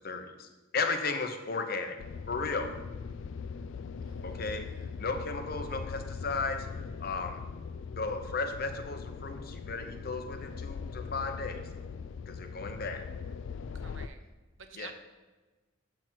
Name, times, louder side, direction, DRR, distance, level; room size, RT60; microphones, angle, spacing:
voice 1, 0.0-2.0 2.3-2.7 4.2-7.4 8.0-11.6 12.3-13.1 14.7-14.9, left 4 dB, 50° left, 6 dB, 0.8 m, -35 dB
sound 1, 2.0-14.1, left 5 dB, 70° left, 0.3 m, -41 dB
voice 2, 4.0-4.6 13.7-14.2 14.6-14.9, right 6 dB, 75° right, 7 dB, 0.8 m, -50 dB
7.6 x 4.4 x 5.9 m, 1.2 s
head